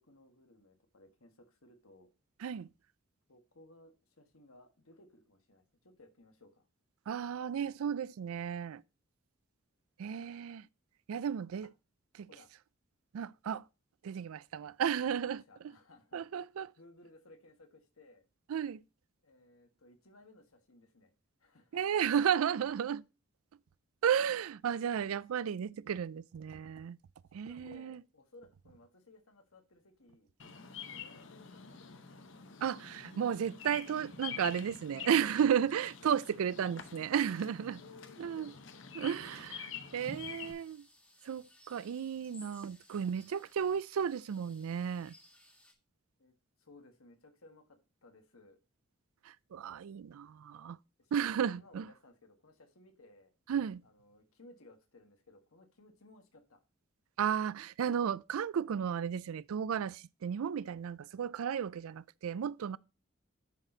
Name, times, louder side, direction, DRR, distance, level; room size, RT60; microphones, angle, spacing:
voice 1, 0.0-2.1 3.3-6.7 11.6-11.7 12.3-12.5 15.1-16.3 16.8-18.3 19.2-21.1 21.4-21.8 27.5-30.3 30.8-32.2 37.8-39.0 46.2-48.6 50.0-50.2 51.0-53.3 53.8-56.6, left 2 dB, 85° left, 1.6 m, -60 dB
voice 2, 7.1-8.8 10.0-10.7 11.1-11.7 12.1-12.3 13.1-13.6 14.0-15.4 16.1-16.7 18.5-18.8 21.7-23.0 24.0-27.0 27.3-28.0 32.6-37.8 38.2-38.5 38.9-40.9 41.2-45.1 49.2-50.8 51.1-51.9 53.5-53.8 57.2-62.8, right 8 dB, 85° right, 0.4 m, -33 dB
Bird vocalization bird call bird song, 30.4-40.5, left 7 dB, 60° left, 0.9 m, -47 dB
sound 1, 40.0-45.7, left 1 dB, 5° left, 1.2 m, -61 dB
10.5 x 4.2 x 3.9 m
head